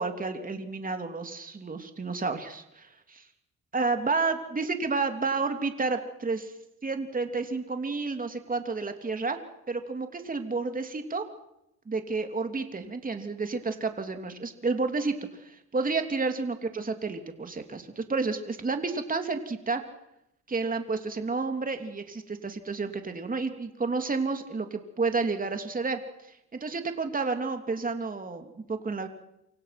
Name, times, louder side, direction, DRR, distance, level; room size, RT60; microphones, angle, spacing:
voice 1, 0.0-3.2 3.7-6.5 6.8-9.4 9.7-11.3 11.9-15.1 15.4-19.8 20.5-26.0 26.5-29.1, right 4 dB, 30° right, 6 dB, 3.1 m, -30 dB
27.5 x 26.0 x 6.1 m, 0.82 s
cardioid pair, 90°, 30 cm